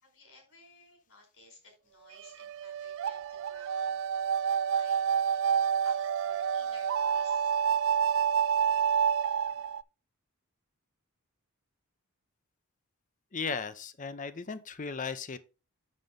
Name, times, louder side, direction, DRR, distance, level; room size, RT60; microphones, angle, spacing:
voice 1, 0.0-5.1 5.3-7.5, left 2 dB, 70° left, 4.5 m, -58 dB
sound 1, 2.2-9.8, right 7 dB, 60° right, 0.3 m, -28 dB
voice 2, 13.3-15.4, left 5 dB, 35° left, 0.7 m, -36 dB
7.6 x 6.6 x 3.7 m
head